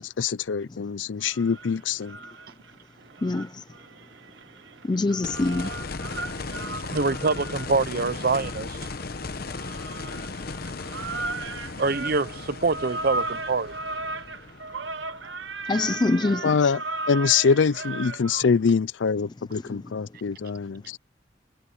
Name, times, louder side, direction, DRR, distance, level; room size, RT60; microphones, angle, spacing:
voice 1, 0.0-2.2 16.4-16.8 17.1-21.0, left 5 dB, 90° left, 0.5 m, -24 dB
sound 1, 1.2-2.7 3.1-18.4, right 3 dB, 80° right, 1.2 m, -36 dB
voice 2, 3.2-3.6 4.8-5.7 15.7-16.7 19.5-19.8, left 2 dB, 25° left, 0.4 m, -25 dB
sound 2, 5.2-16.1 18.4-18.5, left 3 dB, 55° left, 0.9 m, -37 dB
voice 3, 6.8-8.8 11.8-13.7, right 4 dB, 55° right, 0.8 m, -25 dB
head